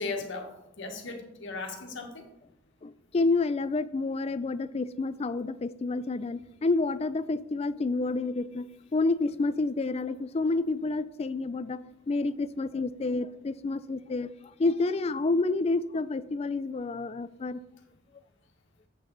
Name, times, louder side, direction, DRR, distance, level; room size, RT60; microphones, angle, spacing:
voice 1, 0.0-2.3, left 3 dB, 60° left, 3 dB, 1.5 m, -37 dB
voice 2, 2.8-14.3 14.6-17.6, left 3 dB, 30° left, 15 dB, 0.3 m, -29 dB
8.9 x 7.8 x 3.9 m, 0.88 s
head